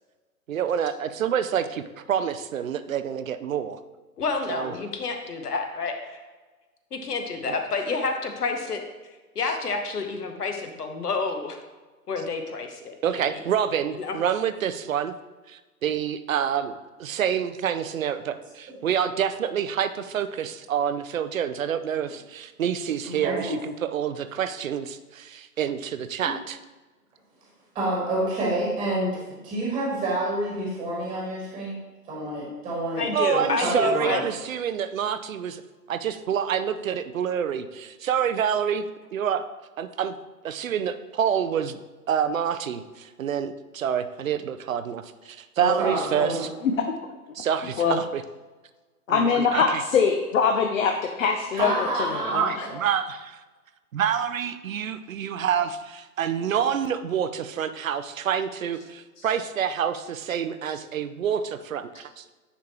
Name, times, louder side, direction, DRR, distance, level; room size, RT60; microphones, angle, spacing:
voice 1, 0.5-3.8 4.5-4.7 7.5-7.6 13.0-15.1 15.5-16.7 17.0-26.6 33.1-35.6 35.9-38.8 39.1-39.4 39.8-40.2 40.4-41.8 42.1-46.5 47.4-48.2 49.1-49.8 52.3-53.4 53.9-62.3, right 8 dB, 60° right, 11 dB, 0.6 m, -27 dB
voice 2, 4.2-6.2 6.9-8.8 9.3-11.6 12.1-13.4 14.0-14.2 33.0-34.2, left 4 dB, 75° left, 5 dB, 1.1 m, -29 dB
voice 3, 23.1-23.5 26.2-26.3 27.7-31.7 32.1-33.0 33.3-34.2 45.6-46.4 51.5-52.8, right 1 dB, 10° right, -5 dB, 1.4 m, -28 dB
voice 4, 49.1-51.7 52.1-52.7, left 6 dB, 60° left, 4 dB, 0.7 m, -23 dB
9.6 x 3.6 x 3.0 m, 1.2 s
figure-of-eight pair, 125°, 47 cm